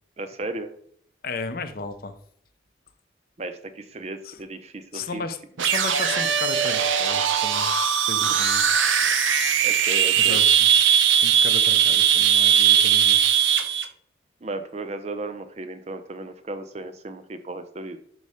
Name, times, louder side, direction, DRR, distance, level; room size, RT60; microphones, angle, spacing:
voice 1, 0.2-0.7 3.4-5.2 9.0-9.2 9.6-10.4 14.4-18.0, right 2 dB, 35° right, 9 dB, 0.5 m, -35 dB
voice 2, 1.2-2.2 4.2-4.4 4.9-8.6 10.1-10.7 11.2-13.2, left 3 dB, 50° left, 10 dB, 0.5 m, -34 dB
sound 1, 5.6-13.9, right 8 dB, 80° right, 0.6 m, -19 dB
5.4 x 4.1 x 4.9 m, 0.63 s
head